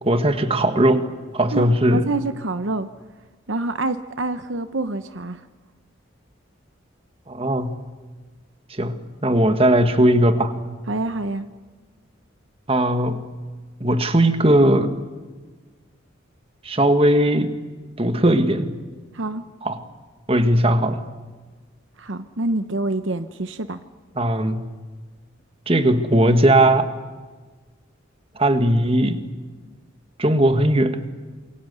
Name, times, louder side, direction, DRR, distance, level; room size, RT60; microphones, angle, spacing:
voice 1, 0.0-1.0 1.3-2.0 7.3-7.8 8.7-10.5 12.7-13.2 13.8-14.9 16.6-17.5 18.0-18.7 19.6-19.8 20.3-21.1 24.2-24.7 25.7-26.9 28.3-29.2 30.2-31.0, right 1 dB, 30° right, 9 dB, 1.6 m, -18 dB
voice 2, 1.5-2.9 3.5-5.4 10.9-11.5 19.1-19.4 22.0-23.8, right 2 dB, 70° right, 11 dB, 1.0 m, -26 dB
27.5 x 22.5 x 8.2 m, 1.4 s
head